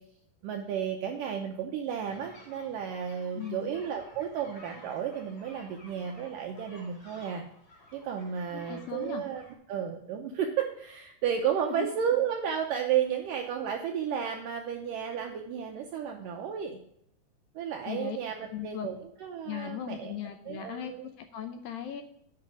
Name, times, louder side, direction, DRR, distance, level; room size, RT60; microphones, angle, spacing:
voice 1, 0.4-7.4 7.9-9.4 9.7-16.8 17.6-20.1 20.5-21.1, right 8 dB, 75° right, 2 dB, 2.0 m, -33 dB
sound 1, 2.0-9.5, left 1 dB, 35° left, 3.9 m, -54 dB
voice 2, 3.3-3.8 8.5-9.2 11.8-11.9 17.8-18.2 18.5-18.9 19.5-22.0, left 9 dB, 80° left, 7 dB, 2.1 m, -38 dB
8.7 x 5.5 x 7.0 m, 0.73 s
omnidirectional pair, 4.8 m